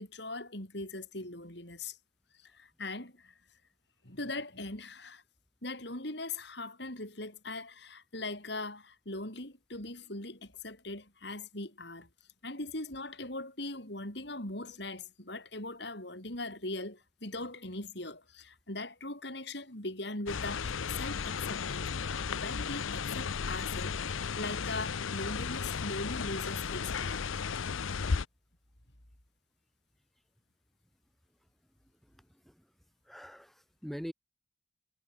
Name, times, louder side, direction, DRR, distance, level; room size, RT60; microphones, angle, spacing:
voice 1, 0.0-2.0 2.4-3.3 4.0-5.2 5.6-12.1 12.4-24.0 24.4-27.3, left 2 dB, 55° left, 6.0 m, -40 dB
sound 1, 20.3-28.3, left 5 dB, 85° left, 0.7 m, -34 dB
voice 2, 32.0-32.7 33.0-34.1, equal, ahead, 3.9 m, -44 dB
head